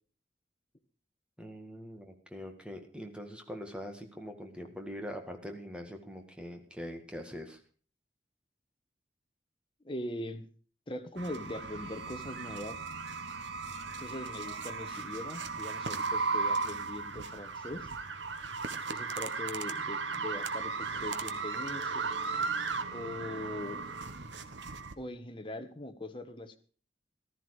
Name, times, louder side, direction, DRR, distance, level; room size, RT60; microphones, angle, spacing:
voice 1, 1.4-7.6, equal, 5° right, 5 dB, 1.9 m, -43 dB
voice 2, 9.8-10.5 10.9-12.8 14.0-17.9 18.9-22.1 22.9-23.8 25.0-26.6, left 1 dB, 30° left, 7 dB, 1.3 m, -41 dB
sound 1, 11.2-24.9, right 4 dB, 85° right, 1.2 m, -36 dB
14.5 x 13.5 x 4.8 m, 0.40 s
head